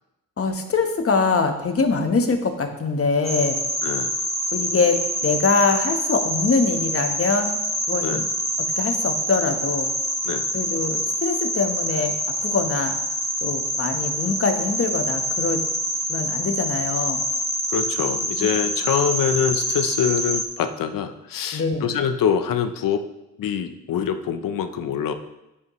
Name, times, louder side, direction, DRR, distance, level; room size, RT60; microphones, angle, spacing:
voice 1, 0.4-3.6 4.5-7.6 7.9-8.3 8.6-9.9 10.5-12.1 12.4-13.0 13.4-15.6 16.1-17.2 18.4-18.5 21.5-21.9, left 4 dB, 45° left, 5 dB, 1.3 m, -23 dB
sound 1, 3.2-20.4, equal, 10° right, 1.5 m, -26 dB
voice 2, 3.8-4.1 8.0-8.2 10.2-10.5 17.7-23.0 23.4-25.1, left 8 dB, 80° left, 9 dB, 0.8 m, -24 dB
11.0 x 8.5 x 3.2 m, 0.94 s
cardioid pair, 90°, 33 cm